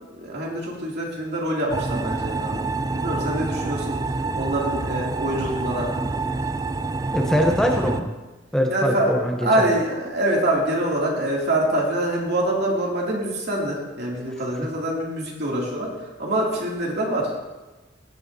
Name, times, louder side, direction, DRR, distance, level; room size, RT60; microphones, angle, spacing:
voice 1, 0.2-2.7 2.9-6.2 8.7-9.1 9.4-17.4, right 1 dB, 60° right, -3 dB, 2.6 m, -25 dB
sound 1, 1.7-8.0, right 3 dB, 20° right, 0.3 m, -27 dB
voice 2, 7.1-8.1 8.5-9.5, equal, 5° left, 1 dB, 0.7 m, -22 dB
16.0 x 8.4 x 2.7 m, 1.2 s
head